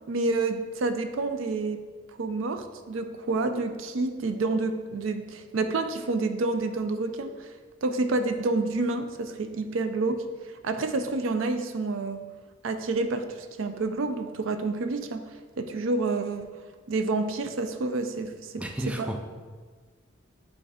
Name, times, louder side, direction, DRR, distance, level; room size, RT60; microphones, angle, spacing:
voice 1, 0.1-1.8 2.2-7.5 7.8-10.3 10.6-12.2 12.6-15.2 15.6-16.5 16.9-19.1, right 3 dB, 75° right, 9 dB, 0.5 m, -28 dB
voice 2, 18.6-19.2, right 1 dB, 5° right, 3 dB, 0.4 m, -32 dB
7.8 x 3.3 x 4.9 m, 1.5 s
head